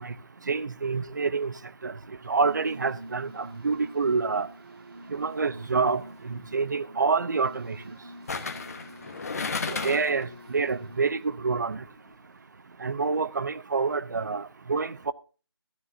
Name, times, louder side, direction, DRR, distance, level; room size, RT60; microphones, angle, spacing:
voice 1, 0.5-1.5 1.8-1.9 2.3-4.5 5.1-7.8 9.7-11.8 12.8-15.1, right 4 dB, 45° right, 0.6 m, -27 dB
sound 1, 2.2-12.6, right 1 dB, 65° right, 3.0 m, -47 dB
sound 2, 5.6-5.9 8.3-10.2 10.6-10.7, left 4 dB, 35° left, 1.1 m, -33 dB
15.0 x 13.0 x 2.7 m
figure-of-eight pair, 170°, 14 cm